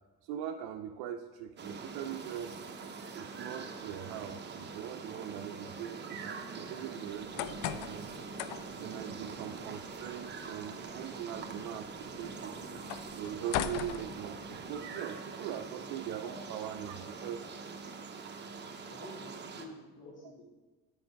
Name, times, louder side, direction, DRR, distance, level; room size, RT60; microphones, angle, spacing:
voice 1, 0.2-2.6 3.1-8.1 8.7-17.5, right 10 dB, 75° right, 4 dB, 0.5 m, -41 dB
sound 1, 1.6-19.7, right 4 dB, 30° right, 0.9 m, -44 dB
sound 2, 7.1-14.8, left 12 dB, 80° left, 0.5 m, -42 dB
voice 2, 16.2-17.5 18.4-20.4, left 2 dB, 35° left, -4 dB, 2.2 m, -51 dB
7.7 x 5.4 x 4.6 m, 1.3 s
supercardioid pair, 95°, 34 cm